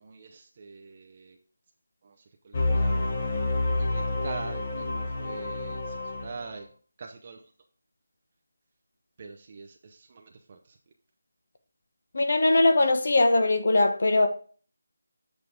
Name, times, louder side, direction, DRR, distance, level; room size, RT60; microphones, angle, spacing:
voice 1, 0.0-1.3 2.5-3.4 3.8-5.8 6.2-6.7 7.0-7.4 9.2-9.7 10.1-10.2, right 4 dB, 25° right, 0.6 m, -42 dB
sound 1, 2.5-6.5, left 2 dB, 25° left, 1.2 m, -28 dB
voice 2, 12.1-14.3, left 2 dB, 50° left, 1.1 m, -21 dB
8.1 x 6.5 x 3.6 m
figure-of-eight pair, 175°, 0 cm